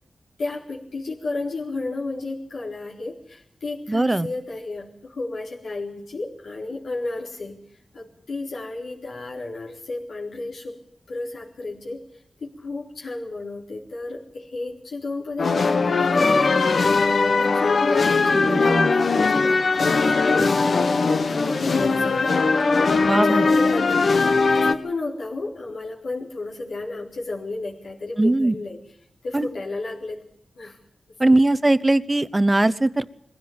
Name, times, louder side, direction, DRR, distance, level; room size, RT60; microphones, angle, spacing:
voice 1, 0.4-7.6 7.9-10.8 11.1-12.0 12.4-22.4 22.9-28.8 29.2-30.2 30.5-30.8 31.1-31.3, left 3 dB, 85° left, -4 dB, 4.2 m, -32 dB
voice 2, 3.9-4.3 18.3-18.9 23.1-23.5 28.2-28.5 29.3-29.5 31.2-33.2, right 2 dB, 20° right, 15 dB, 0.8 m, -20 dB
sound 1, 15.4-24.7, left 4 dB, 60° left, 1.3 m, -20 dB
22.5 x 16.0 x 8.8 m, 0.69 s
wide cardioid pair, 140°, 0 cm